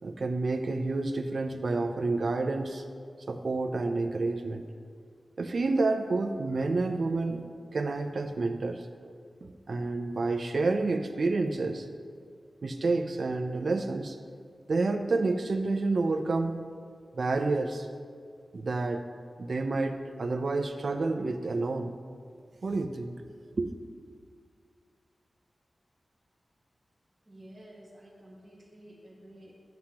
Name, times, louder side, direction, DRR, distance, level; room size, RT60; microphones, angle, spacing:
voice 1, 0.0-2.8 3.3-4.6 5.4-7.4 7.7-9.1 9.4-11.9 12.6-14.2 14.7-16.6 17.1-17.9 18.5-19.0 19.4-21.9 22.6-23.8, right 3 dB, 60° right, 5 dB, 0.5 m, -29 dB
voice 2, 27.3-29.5, right 1 dB, 15° right, -6 dB, 1.1 m, -51 dB
11.5 x 7.7 x 2.9 m, 2.1 s
wide cardioid pair, 115°, 0 cm